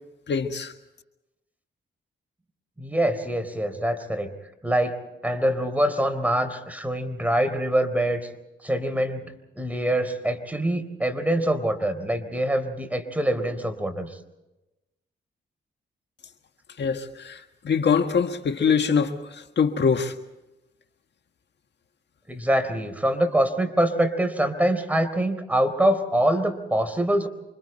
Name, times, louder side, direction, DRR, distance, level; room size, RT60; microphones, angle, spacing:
voice 1, 0.3-0.7 16.8-20.1, left 6 dB, 65° left, 1.7 m, -24 dB
voice 2, 2.8-4.3 4.6-5.0 5.2-8.3 8.6-9.2 9.6-14.2 22.3-27.3, right 1 dB, 10° right, 3.8 m, -24 dB
29.0 x 25.5 x 4.4 m
cardioid pair, 80°, 20 cm